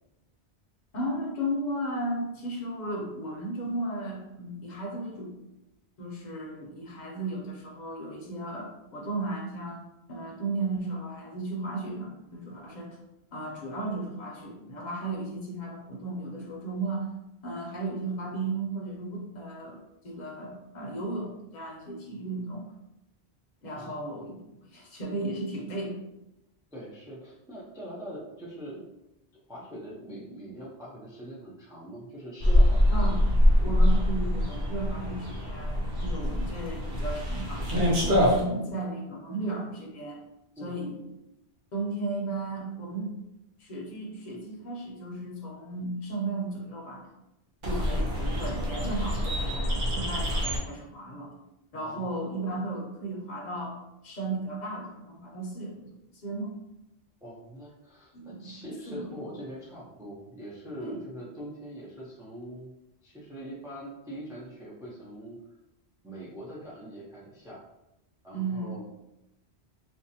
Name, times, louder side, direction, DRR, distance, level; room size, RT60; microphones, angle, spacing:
voice 1, 0.9-5.3 6.0-13.0 13.3-17.1 17.4-19.8 20.0-22.7 23.6-24.4 24.7-26.0 32.9-33.2 33.6-37.7 38.0-40.2 40.6-41.0 41.7-43.1 43.6-47.1 47.6-51.3 51.7-53.8 54.0-55.9 56.2-56.6 58.1-59.2 60.8-61.0 68.3-68.8, right 2 dB, 50° left, -1 dB, 0.6 m, -35 dB
voice 2, 23.7-24.2 26.7-28.8 29.3-33.2 40.6-40.7 47.7-48.2 51.8-52.2 57.2-62.7 63.0-65.4 66.0-67.6 68.2-68.8, equal, 5° right, -6 dB, 0.3 m, -43 dB
sound 1, 32.4-38.4 47.6-50.6, left 1 dB, 60° right, 0.8 m, -24 dB
2.6 x 2.1 x 2.7 m, 0.90 s
omnidirectional pair, 1.1 m